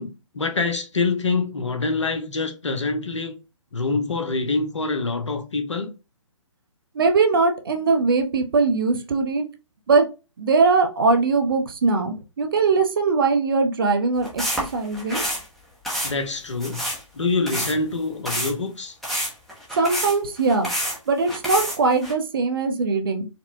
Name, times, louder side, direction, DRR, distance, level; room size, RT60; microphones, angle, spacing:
voice 1, 0.0-3.4 3.7-5.9 16.0-16.9 17.1-19.0, left 3 dB, 65° left, 0.8 m, -25 dB
voice 2, 6.9-9.5 9.9-10.1 10.4-15.2 19.7-20.7 21.1-23.3, right 4 dB, 45° right, 0.6 m, -21 dB
sound 1, 14.2-15.4 15.8-16.1 16.6-17.0 17.5-17.7 18.3-18.5 19.0-21.0 21.3-22.1, equal, ahead, 0.6 m, -28 dB
4.2 x 2.1 x 2.5 m
figure-of-eight pair, 130°, 17 cm